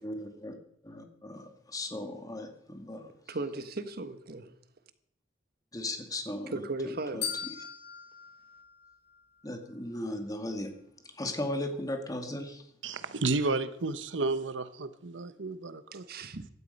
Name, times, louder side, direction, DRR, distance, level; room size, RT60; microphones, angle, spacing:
voice 1, 0.0-0.5 0.8-3.0 5.7-6.6 7.1-7.2 9.4-10.7 11.2-12.6, left 1 dB, 20° left, 2.1 m, -36 dB
voice 2, 3.3-4.5 6.5-7.3 15.9-16.5, right 2 dB, 55° right, 1.2 m, -37 dB
sound 1, 7.2-9.5, left 7 dB, 70° left, 6.9 m, -40 dB
voice 3, 12.8-16.0, right 3 dB, 90° right, 1.0 m, -32 dB
16.5 x 12.5 x 5.4 m
head